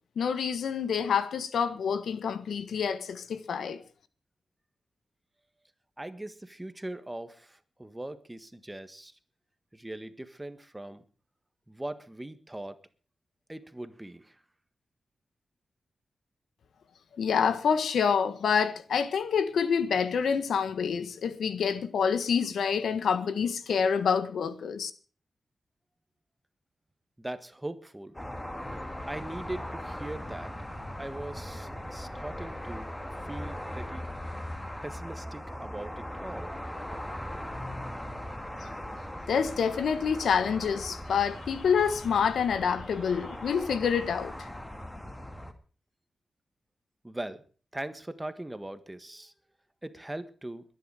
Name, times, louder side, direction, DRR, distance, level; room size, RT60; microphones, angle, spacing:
voice 1, 0.1-3.8 17.2-24.9 39.3-44.5, left 6 dB, 90° left, 1.5 m, -27 dB
voice 2, 6.0-9.1 9.7-11.0 11.7-12.8 13.5-14.3 27.2-28.1 29.1-30.5 31.0-32.9 33.2-34.1 34.8-36.5 47.0-47.4 47.7-49.3 49.8-50.6, right 1 dB, 10° right, 1.6 m, -40 dB
sound 1, 28.1-45.5, left 1 dB, 10° left, 2.2 m, -39 dB
22.0 x 10.5 x 4.9 m
wide cardioid pair, 100°, 0 cm